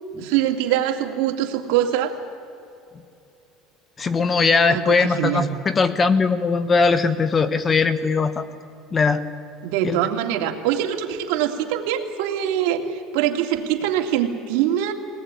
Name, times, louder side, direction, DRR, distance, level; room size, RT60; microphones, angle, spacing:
voice 1, 0.2-2.2 4.7-5.5 9.6-14.9, right 11 dB, 80° right, 4 dB, 2.3 m, -23 dB
voice 2, 4.0-8.5 8.9-9.2 9.8-10.0, left 4 dB, 25° left, 13 dB, 1.1 m, -20 dB
21.0 x 18.5 x 9.6 m, 2.6 s
cardioid pair, 140°, 0 cm